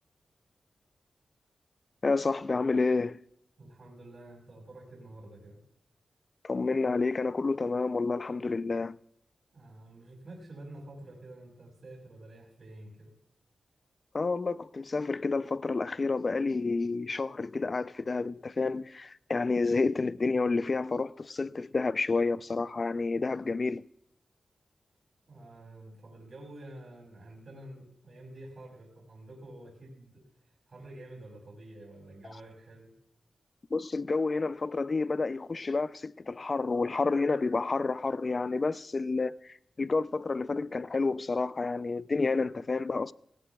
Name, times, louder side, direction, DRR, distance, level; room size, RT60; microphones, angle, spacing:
voice 1, 2.0-3.2 6.4-9.0 14.1-23.9 33.7-43.1, left 3 dB, 45° left, 0.4 m, -29 dB
voice 2, 3.6-5.6 9.5-13.2 25.3-33.0, right 1 dB, 60° right, 5.6 m, -49 dB
18.0 x 17.5 x 2.3 m
cardioid pair, 65°, 0 cm